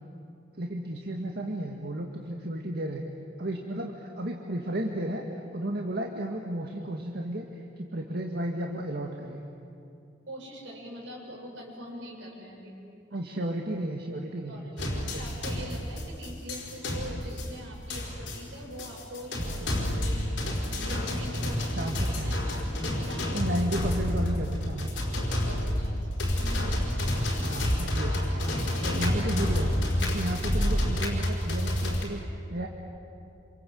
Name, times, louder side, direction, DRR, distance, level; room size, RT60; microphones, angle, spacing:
voice 1, 0.6-3.0 3.4-9.4 13.1-15.3 21.5-22.4 23.3-24.9 27.4-28.5 28.8-29.7 30.0-32.7, right 1 dB, 60° right, 1 dB, 1.9 m, -33 dB
voice 2, 10.3-12.7 13.1-13.2 14.5-23.8 25.2-26.3 28.4-30.1, equal, 75° right, -1 dB, 7.3 m, -44 dB
sound 1, 14.8-32.0, left 1 dB, 75° left, 4.8 m, -29 dB
28.0 x 27.0 x 7.8 m, 2.6 s
head